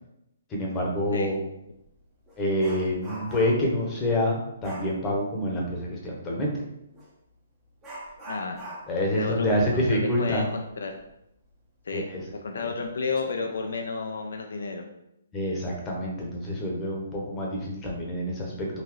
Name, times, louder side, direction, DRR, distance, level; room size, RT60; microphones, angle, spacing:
voice 1, 0.5-1.4 2.4-6.5 8.9-10.4 11.9-12.2 12.6-12.7 15.3-18.7, left 1 dB, 20° left, -2 dB, 1.0 m, -27 dB
Dog, 1.3-1.4 1.8-3.7 4.6-5.0 6.9-7.1 7.8-11.1 11.4-11.5 12.0-12.1 12.8-13.2 13.6-13.8, right 1 dB, 15° right, 1.0 m, -43 dB
voice 2, 8.3-8.6 9.2-10.9 11.8-12.1 12.4-14.8, left 4 dB, 70° left, 3 dB, 0.4 m, -31 dB
3.8 x 2.7 x 3.1 m, 0.83 s
figure-of-eight pair, 135°, 0 cm